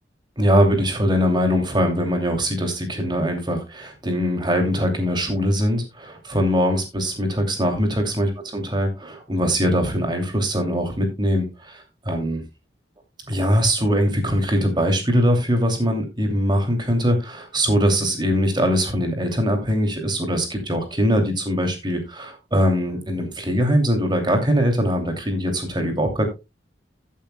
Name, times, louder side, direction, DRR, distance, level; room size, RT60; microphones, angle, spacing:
voice 1, 0.4-12.4 13.3-26.2, equal, 25° right, 4 dB, 2.6 m, -22 dB
15.5 x 8.5 x 2.2 m, 0.25 s
head